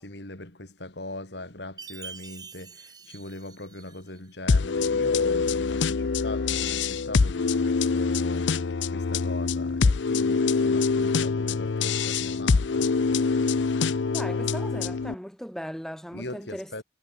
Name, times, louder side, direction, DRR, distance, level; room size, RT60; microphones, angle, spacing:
voice 1, 0.0-12.9 16.1-16.8, left 2 dB, 70° left, 3.6 m, -40 dB
Chime, 1.8-4.3, right 5 dB, 20° right, 5.9 m, -45 dB
sound 1, 4.5-15.1, left 4 dB, 85° left, 0.6 m, -25 dB
voice 2, 14.1-16.8, equal, ahead, 3.1 m, -38 dB
head